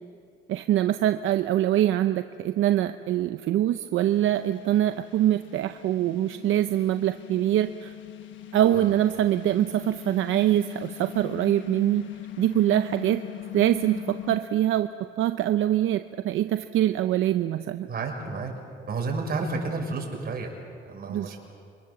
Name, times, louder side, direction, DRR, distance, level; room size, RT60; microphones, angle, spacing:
voice 1, 0.5-7.9 8.5-12.1 12.4-13.2 13.5-14.9 15.2-17.9 21.1-21.3, right 12 dB, 80° right, 9 dB, 0.7 m, -24 dB
sound 1, 4.0-14.4, left 13 dB, 70° left, 1.3 m, -41 dB
voice 2, 17.8-18.5 18.9-20.6 20.8-21.4, right 3 dB, 50° right, 1 dB, 6.1 m, -31 dB
27.0 x 24.5 x 7.1 m, 2.3 s
cardioid pair, 90°, 20 cm